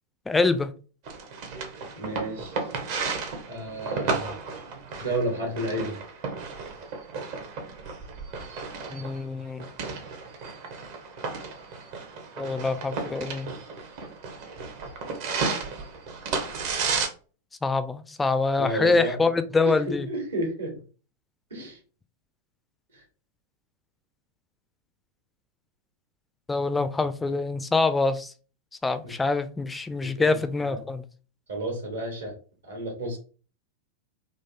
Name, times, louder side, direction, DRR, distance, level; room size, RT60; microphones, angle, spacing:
voice 1, 0.3-0.7 8.9-9.7 12.4-13.5 17.6-20.1 26.5-28.3 28.8-31.0, left 3 dB, 10° left, 0.3 m, -25 dB
sound 1, 1.1-17.1, right 4 dB, 50° right, 0.8 m, -33 dB
voice 2, 1.9-2.6 3.5-4.3 5.0-5.9 18.6-19.2 19.6-20.7 21.5-21.8 22.9-23.0 29.0-29.1 30.0-30.8 31.5-32.3 32.6-33.2, right 1 dB, 70° right, 1.5 m, -31 dB
3.7 x 2.5 x 2.7 m
figure-of-eight pair, 90°, 0 cm